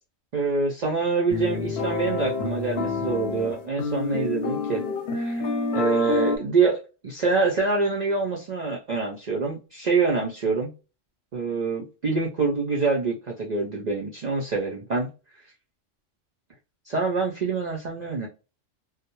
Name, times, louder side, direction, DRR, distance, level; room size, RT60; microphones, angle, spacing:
voice 1, 0.3-4.8 5.2-10.7 11.3-15.1 16.9-18.3, right 4 dB, 75° right, -1 dB, 0.4 m, -26 dB
sound 1, 1.3-6.4, left 3 dB, 55° left, 0.8 m, -28 dB
2.2 x 2.0 x 2.9 m, 0.32 s
omnidirectional pair, 1.4 m